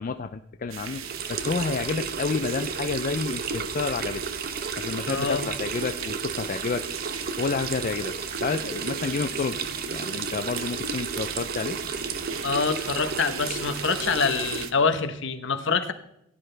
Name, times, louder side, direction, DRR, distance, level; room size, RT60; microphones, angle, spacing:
voice 1, 0.0-4.2 4.8-6.9 7.4-9.6 9.9-11.8, left 4 dB, 40° left, 9 dB, 0.4 m, -30 dB
sound 1, 0.7-14.7, right 9 dB, 90° right, 0.9 m, -39 dB
sound 2, 0.8-14.7, right 5 dB, 50° right, 0.8 m, -33 dB
voice 2, 5.1-5.5 12.4-15.9, left 5 dB, 60° left, 9 dB, 1.0 m, -25 dB
sound 3, 5.9-14.9, right 1 dB, 65° right, 2.7 m, -49 dB
17.5 x 10.0 x 3.3 m, 0.78 s
head